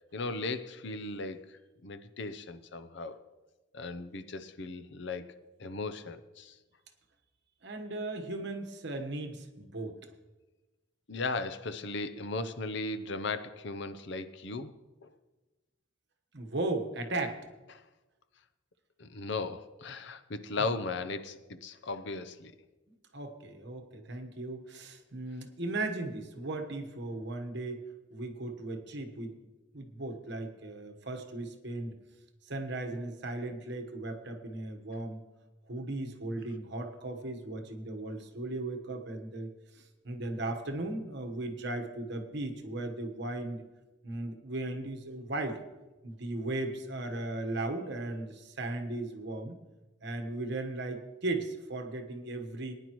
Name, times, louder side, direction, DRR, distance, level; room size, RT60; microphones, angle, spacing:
voice 1, 0.1-3.2 3.7-6.6 11.1-14.7 19.0-22.5, left 3 dB, 60° left, 11 dB, 0.6 m, -37 dB
voice 2, 7.6-10.0 16.3-17.4 23.1-29.4 29.7-31.9 32.4-35.2 35.7-39.5 39.7-43.6 44.0-45.6 46.0-49.6 50.0-52.7, right 2 dB, 55° right, 5 dB, 1.2 m, -37 dB
19.5 x 10.0 x 3.1 m, 1.2 s
head